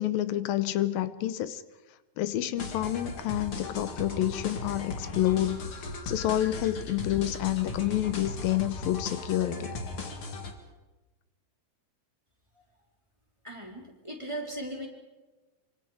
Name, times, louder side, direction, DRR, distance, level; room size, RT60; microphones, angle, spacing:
voice 1, 0.0-1.6 2.2-9.7, left 13 dB, 85° left, 13 dB, 2.7 m, -29 dB
sound 1, 2.6-10.5, left 3 dB, 40° left, 2.7 m, -37 dB
voice 2, 13.4-14.9, right 1 dB, 10° right, 0 dB, 3.9 m, -37 dB
26.5 x 25.0 x 5.0 m, 1.2 s
omnidirectional pair, 4.0 m